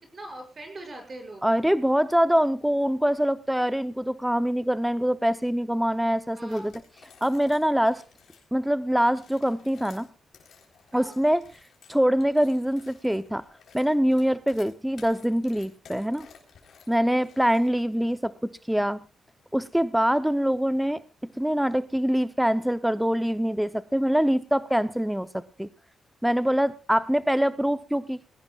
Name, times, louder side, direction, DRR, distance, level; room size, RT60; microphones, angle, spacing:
voice 1, 0.1-1.5 6.3-6.7 10.9-11.2 17.0-17.1, right 1 dB, 40° right, 3 dB, 6.0 m, -41 dB
voice 2, 1.4-6.7 7.2-8.0 8.5-10.1 10.9-11.4 11.9-13.4 13.7-16.3 16.9-19.0 19.5-21.0 21.4-25.7 26.2-28.2, equal, 5° right, 13 dB, 0.7 m, -24 dB
sound 1, 6.5-8.5 9.1-17.9, left 6 dB, 75° left, 3.6 m, -55 dB
20.5 x 17.0 x 2.3 m, 0.32 s
cardioid pair, 95°, 0 cm